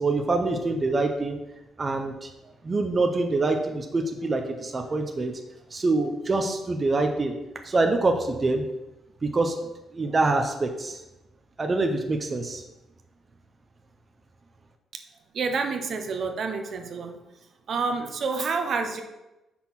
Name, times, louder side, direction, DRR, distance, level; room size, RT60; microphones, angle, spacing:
voice 1, 0.0-1.4 1.8-2.3 2.6-5.3 5.7-7.3 7.6-8.6 9.2-9.6 9.9-11.0 11.6-12.6, right 3 dB, 30° right, 4 dB, 0.7 m, -25 dB
voice 2, 15.3-17.2 17.7-19.0, right 4 dB, 55° right, 5 dB, 0.8 m, -28 dB
5.7 x 4.3 x 5.9 m, 0.97 s
cardioid pair, 90°, 0 cm